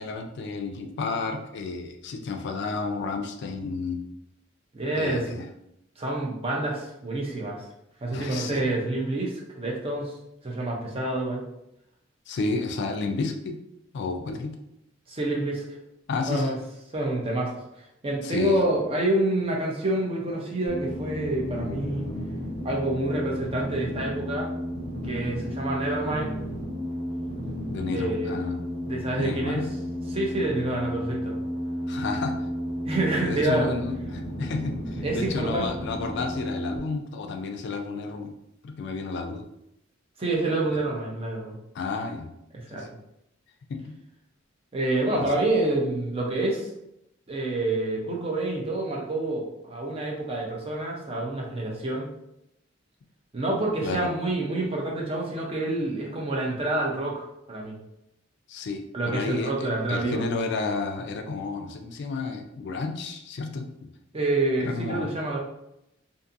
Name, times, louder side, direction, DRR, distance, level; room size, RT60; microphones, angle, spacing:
voice 1, 0.0-4.0 5.0-5.5 8.1-8.6 12.3-13.6 13.9-14.6 16.1-16.6 18.2-18.6 27.7-28.6 29.1-29.7 31.9-32.3 33.2-38.3 38.6-39.4 40.7-40.8 41.7-42.3 42.7-42.9 43.7-43.9 45.1-45.3 53.8-54.1 58.5-63.9 64.6-65.1, left 4 dB, 60° left, 4 dB, 0.3 m, -31 dB
voice 2, 4.7-5.3 6.0-7.6 8.0-10.1 10.4-11.4 15.1-15.8 16.3-16.5 16.9-17.6 18.0-22.1 22.6-24.5 25.0-26.3 27.9-28.4 28.9-29.6 30.1-31.3 32.8-33.7 35.0-35.7 40.2-41.6 42.5-43.0 44.7-46.7 47.3-52.1 53.3-57.8 58.9-60.2 64.1-65.4, right 2 dB, 30° right, -1 dB, 0.5 m, -27 dB
sound 1, 20.7-36.8, equal, 65° right, 1.5 m, -33 dB
2.5 x 2.5 x 2.5 m, 0.83 s
head